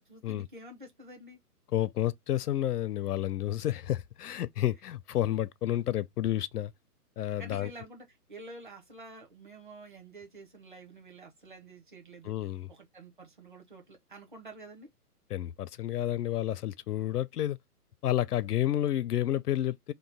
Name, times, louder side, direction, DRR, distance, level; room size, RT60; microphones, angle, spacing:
voice 1, 0.0-1.4 7.4-14.9, right 2 dB, 30° right, 0.8 m, -49 dB
voice 2, 1.7-6.7 7.2-7.7 12.2-12.7 15.3-17.6 18.0-19.9, left 12 dB, 80° left, 0.5 m, -30 dB
3.0 x 2.1 x 3.9 m
hypercardioid pair, 175°, 46 cm